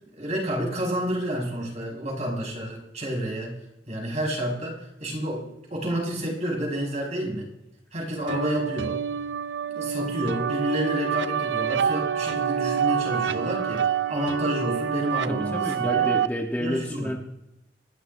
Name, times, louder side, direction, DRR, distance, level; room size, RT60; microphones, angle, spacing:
voice 1, 0.2-3.6 3.9-7.5 7.9-9.0 9.7-16.1 16.6-17.1, equal, 40° right, -2 dB, 5.6 m, -30 dB
sound 1, 8.3-16.3, right 8 dB, 85° right, 0.5 m, -27 dB
voice 2, 15.3-17.2, equal, 10° left, 0 dB, 1.3 m, -30 dB
27.0 x 12.0 x 2.7 m, 0.85 s
head